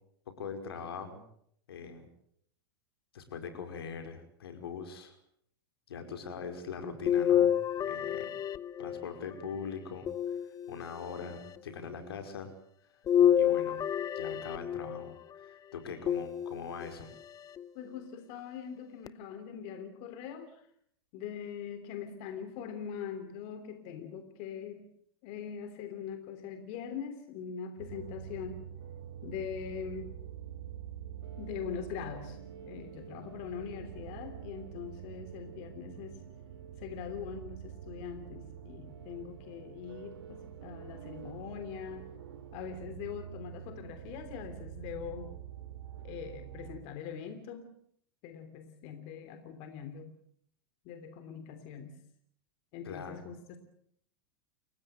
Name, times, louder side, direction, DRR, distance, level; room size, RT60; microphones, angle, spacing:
voice 1, 0.3-1.3 1.7-2.1 3.1-5.2 5.9-8.3 8.8-10.4 10.7-12.5 13.4-13.8 14.2-15.2 15.4-17.1 52.8-53.2, left 5 dB, 80° left, 7 dB, 5.2 m, -42 dB
sound 1, 7.1-9.3 10.1-11.1 13.1-15.1 16.1-16.9 17.6-17.7 19.1-19.2, left 10 dB, 30° left, 1.0 m, -28 dB
voice 2, 17.7-20.7 21.1-24.8 25.2-28.6 29.2-30.1 31.4-36.2 36.8-42.1 42.5-45.3 46.0-47.8 48.2-50.1 50.8-52.0 52.7-53.6, left 7 dB, 50° left, 8 dB, 3.1 m, -42 dB
sound 2, 27.8-46.8, right 9 dB, 75° right, 3.9 m, -46 dB
29.5 x 16.0 x 8.0 m, 0.67 s
hypercardioid pair, 110°, 13 cm